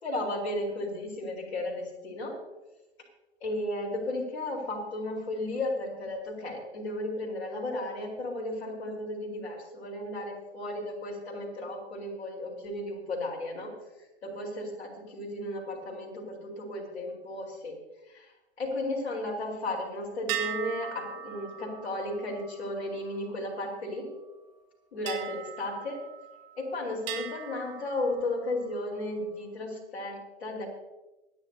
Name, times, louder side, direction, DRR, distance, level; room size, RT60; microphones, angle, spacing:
voice 1, 0.0-2.4 3.4-13.7 14.2-17.8 18.1-18.3 18.6-24.1 24.9-26.0 26.6-30.7, left 1 dB, 65° left, -1 dB, 4.3 m, -34 dB
sound 1, 20.3-24.0 25.1-26.6 27.1-28.7, right 10 dB, 30° right, 1.6 m, -40 dB
26.5 x 10.0 x 2.8 m, 1.0 s
figure-of-eight pair, 110°, 34 cm